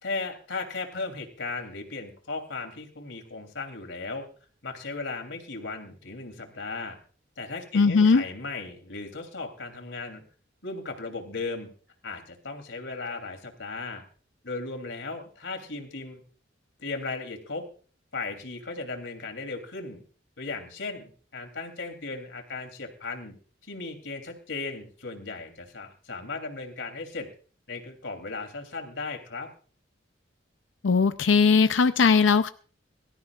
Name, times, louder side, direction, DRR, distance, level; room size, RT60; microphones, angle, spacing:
voice 1, 0.0-4.3 4.6-7.0 7.4-10.2 10.6-11.7 12.0-14.0 14.4-16.2 16.8-17.6 18.1-20.0 20.4-23.3 23.6-27.3 27.7-29.5, left 3 dB, 75° left, 5 dB, 3.2 m, -36 dB
voice 2, 7.7-8.2 30.8-32.5, left 5 dB, 90° left, 11 dB, 0.6 m, -19 dB
23.0 x 13.5 x 2.4 m, 0.41 s
head